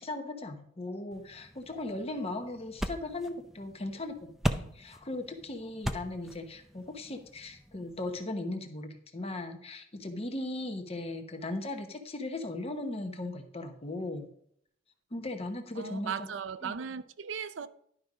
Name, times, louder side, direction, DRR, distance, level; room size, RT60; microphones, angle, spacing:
voice 1, 0.0-14.3 15.1-16.3 16.6-16.7, left 2 dB, 35° left, 1.0 m, -38 dB
wrist grabbed, 1.1-8.2, equal, ahead, 0.5 m, -39 dB
voice 2, 15.7-17.7, right 7 dB, 80° right, 0.6 m, -37 dB
11.5 x 5.3 x 4.9 m
head